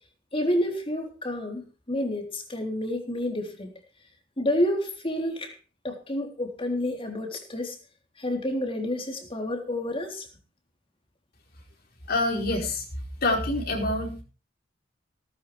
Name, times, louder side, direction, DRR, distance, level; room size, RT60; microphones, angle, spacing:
voice 1, 0.3-3.7 4.4-5.6 5.8-7.8 8.2-10.3, left 1 dB, 30° left, 3 dB, 3.5 m, -29 dB
voice 2, 12.1-12.8 13.2-14.2, left 2 dB, 50° left, 2 dB, 4.7 m, -26 dB
18.0 x 13.0 x 3.3 m, 0.36 s
head